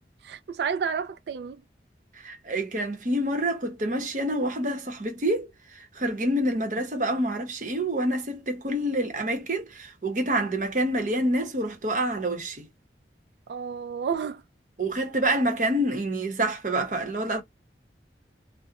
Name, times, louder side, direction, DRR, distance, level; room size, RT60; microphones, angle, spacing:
voice 1, 0.2-1.6 13.5-14.4, right 6 dB, 70° right, 0.3 m, -30 dB
voice 2, 2.2-5.5 6.0-12.7 14.8-17.4, right 1 dB, 45° right, 0.8 m, -27 dB
2.4 x 2.0 x 2.8 m
head